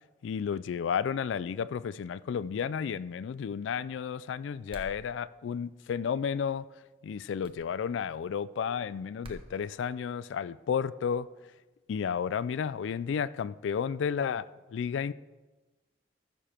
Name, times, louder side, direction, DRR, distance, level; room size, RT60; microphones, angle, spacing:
voice 1, 0.2-6.7 7.0-11.3 11.9-15.1, left 7 dB, 85° left, 0.3 m, -32 dB
sound 1, 4.7-5.0 7.4-7.6 9.2-9.5, right 1 dB, 30° right, 1.0 m, -46 dB
14.5 x 6.9 x 4.4 m
head